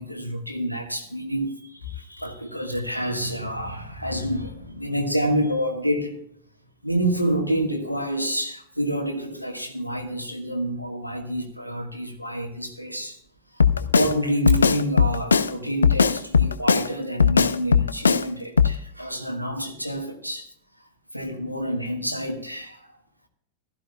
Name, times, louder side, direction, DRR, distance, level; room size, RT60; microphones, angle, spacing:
voice 1, 0.0-6.2 6.8-13.2 13.7-20.5 21.1-22.9, equal, 90° left, 1.5 m, -28 dB
Drum kit, 13.6-14.1 14.5-15.5 15.8-16.9 17.2-18.2 18.6-18.7, left 6 dB, 75° left, 0.5 m, -18 dB
16.0 x 13.0 x 2.3 m
figure-of-eight pair, 90°, 0 cm